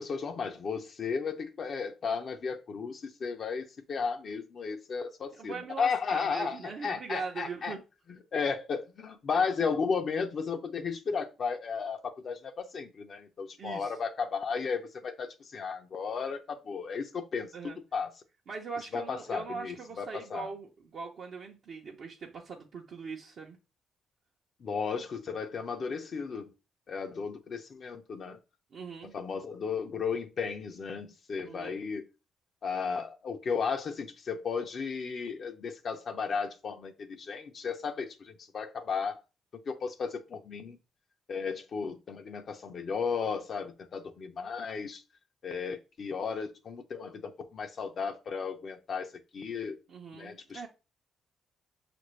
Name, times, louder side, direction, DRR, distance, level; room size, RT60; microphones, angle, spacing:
voice 1, 0.0-7.7 8.3-18.1 18.9-20.5 24.6-26.5 26.9-28.4 29.1-32.1 32.6-39.2 39.7-40.8 41.3-45.0 45.4-49.8 50.1-50.7, left 5 dB, 50° left, 0.6 m, -34 dB
voice 2, 5.3-7.8 9.3-9.4 13.6-13.9 17.5-17.8 18.5-23.6 28.7-29.2 31.4-31.8 49.9-50.7, right 5 dB, 60° right, 0.7 m, -41 dB
5.8 x 2.5 x 3.1 m
cardioid pair, 90°, 0 cm